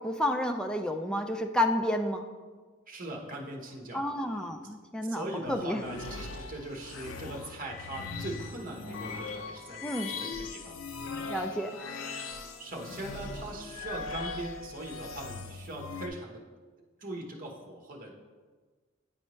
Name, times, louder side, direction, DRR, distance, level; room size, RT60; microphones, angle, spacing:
voice 1, 0.0-2.3 3.9-5.8 9.8-10.1 11.3-11.8, left 1 dB, 5° left, 4 dB, 0.4 m, -30 dB
voice 2, 2.9-4.0 5.1-10.8 12.6-16.4 17.0-18.1, right 1 dB, 45° right, 0 dB, 1.1 m, -40 dB
sound 1, 5.4-16.1, left 4 dB, 75° left, 0.5 m, -40 dB
9.7 x 4.4 x 3.1 m, 1.4 s
head